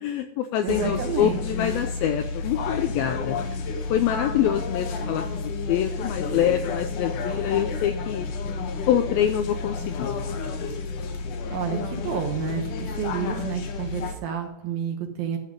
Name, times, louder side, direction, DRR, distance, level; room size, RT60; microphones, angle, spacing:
voice 1, 0.0-3.4 3.9-8.3 8.9-10.1, left 10 dB, 85° left, 7 dB, 2.1 m, -25 dB
voice 2, 0.6-1.4 11.5-15.4, right 7 dB, 70° right, 4 dB, 2.6 m, -30 dB
sound 1, 0.7-14.2, left 4 dB, 70° left, 2.1 m, -31 dB
12.0 x 5.5 x 5.2 m, 0.85 s
omnidirectional pair, 4.8 m